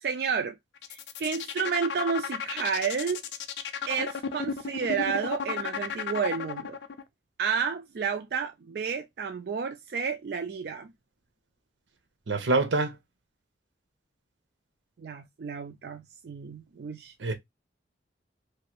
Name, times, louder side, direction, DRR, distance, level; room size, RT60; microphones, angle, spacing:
voice 1, 0.0-0.6 0.9-3.2 3.9-6.8 7.4-10.9 15.0-17.1, right 6 dB, 60° right, 0.3 m, -31 dB
sound 1, 0.8-7.0, left 7 dB, 75° left, 0.4 m, -33 dB
voice 2, 12.3-12.9 17.2-17.3, right 3 dB, 85° right, 0.8 m, -25 dB
3.1 x 2.6 x 2.9 m
head